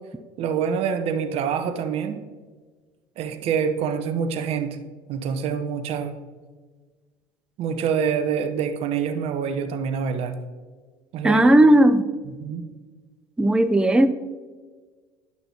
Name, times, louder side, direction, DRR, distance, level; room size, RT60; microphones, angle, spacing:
voice 1, 0.4-2.2 3.2-4.8 5.1-6.2 7.6-10.4 11.1-11.4 12.4-12.7, right 7 dB, 60° right, 8 dB, 0.8 m, -26 dB
voice 2, 11.2-12.1 13.4-14.1, right 1 dB, 5° right, 9 dB, 0.4 m, -16 dB
10.5 x 5.9 x 2.8 m, 1.4 s
hypercardioid pair, 75°, 12 cm